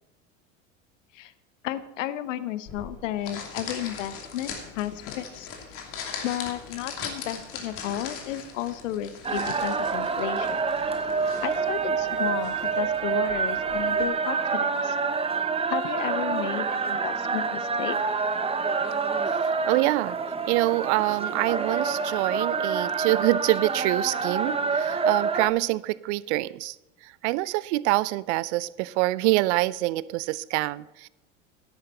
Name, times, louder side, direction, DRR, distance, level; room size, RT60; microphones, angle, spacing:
voice 1, 1.6-5.5 6.2-10.6 11.4-15.0 15.7-18.0, left 12 dB, 70° left, 14 dB, 0.9 m, -33 dB
sound 1, 2.7-14.0, left 6 dB, 50° left, 2.7 m, -40 dB
sound 2, 9.2-25.5, right 5 dB, 15° right, 0.9 m, -27 dB
voice 2, 19.6-20.2 20.5-26.8 27.0-31.1, right 19 dB, 60° right, 20 dB, 0.6 m, -25 dB
13.0 x 11.0 x 4.3 m, 0.95 s
hypercardioid pair, 80°, 39 cm